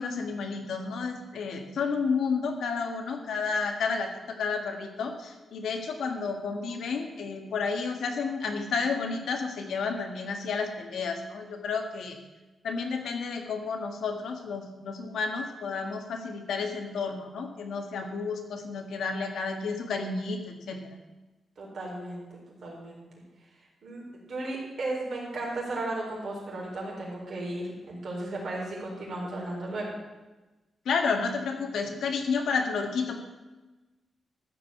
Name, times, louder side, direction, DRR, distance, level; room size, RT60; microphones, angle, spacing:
voice 1, 0.0-12.2 12.6-20.8 30.9-33.2, left 5 dB, 80° left, 4 dB, 1.7 m, -31 dB
voice 2, 21.6-22.2 22.6-23.0 23.6-29.9, right 2 dB, 50° right, -3 dB, 4.2 m, -35 dB
14.0 x 5.4 x 8.4 m, 1.1 s
wide cardioid pair, 170°, 0 cm